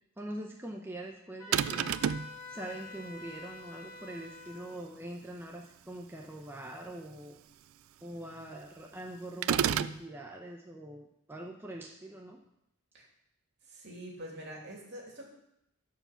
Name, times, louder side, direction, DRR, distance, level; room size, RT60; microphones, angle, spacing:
voice 1, 0.2-1.9 2.5-7.4 8.0-12.4, right 1 dB, 10° right, 0 dB, 0.7 m, -43 dB
Wind instrument woodwind instrument, 1.4-4.8, left 3 dB, 15° left, 3.2 m, -47 dB
sound 1, 1.5-2.3 9.4-10.0, right 9 dB, 75° right, 0.3 m, -29 dB
voice 2, 13.6-15.2, right 1 dB, 55° right, -1 dB, 2.5 m, -45 dB
12.5 x 4.8 x 5.7 m, 0.81 s
head